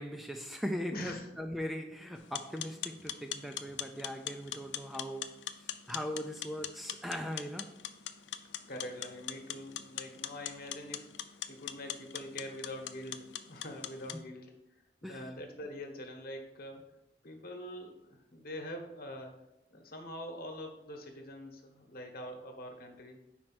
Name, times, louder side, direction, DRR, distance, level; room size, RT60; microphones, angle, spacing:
voice 1, 0.0-5.3 5.9-7.7 15.0-15.3, equal, ahead, 4 dB, 0.4 m, -39 dB
voice 2, 0.9-1.3 8.7-11.1 11.5-14.5 15.0-16.9 17.2-19.4 19.7-23.2, left 1 dB, 55° left, 3 dB, 1.1 m, -44 dB
sound 1, 2.2-14.2, left 10 dB, 85° left, 0.4 m, -42 dB
5.3 x 4.5 x 6.0 m, 0.92 s
head